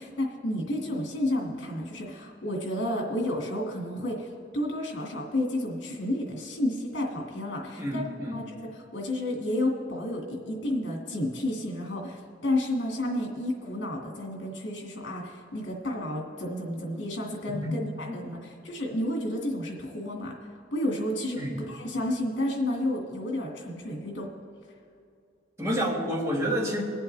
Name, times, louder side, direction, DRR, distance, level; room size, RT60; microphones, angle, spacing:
voice 1, 0.0-4.3 4.5-8.0 8.3-8.4 8.9-18.4 18.6-20.3 20.7-21.4 21.7-24.3, left 1 dB, 70° left, 0 dB, 2.1 m, -31 dB
voice 2, 7.8-8.4 17.5-17.7 18.1-18.2 21.4-21.6 25.6-26.8, equal, 15° right, -3 dB, 1.6 m, -29 dB
21.0 x 7.7 x 3.4 m, 2.5 s
head